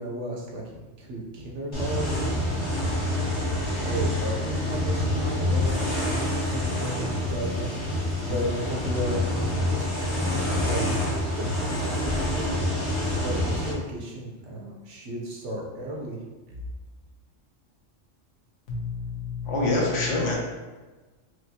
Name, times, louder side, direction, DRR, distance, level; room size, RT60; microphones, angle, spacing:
voice 1, 0.0-2.8 3.8-11.5 11.8-12.6 13.0-16.2 16.5-16.6, right 1 dB, 70° right, -2 dB, 1.1 m, -34 dB
sound 1, 1.7-13.7, left 1 dB, 30° left, 0.6 m, -27 dB
voice 2, 18.7-20.4, left 2 dB, 75° left, -4 dB, 1.2 m, -26 dB
4.6 x 2.0 x 2.8 m, 1.2 s
omnidirectional pair, 1.3 m